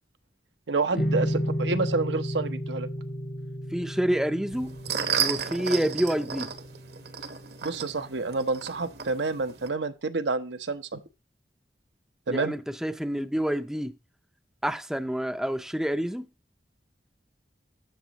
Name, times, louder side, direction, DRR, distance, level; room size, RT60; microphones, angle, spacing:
voice 1, 0.7-2.9 7.6-11.0 12.3-12.6, right 3 dB, 85° right, 0.9 m, -29 dB
sound 1, 0.9-8.2, equal, 80° left, 6.3 m, -33 dB
voice 2, 3.7-4.8 5.2-6.5 12.3-14.0 14.6-16.3, equal, 5° right, 0.5 m, -28 dB
sound 2, 4.5-9.7, right 7 dB, 65° right, 1.1 m, -33 dB
12.5 x 7.0 x 2.9 m
head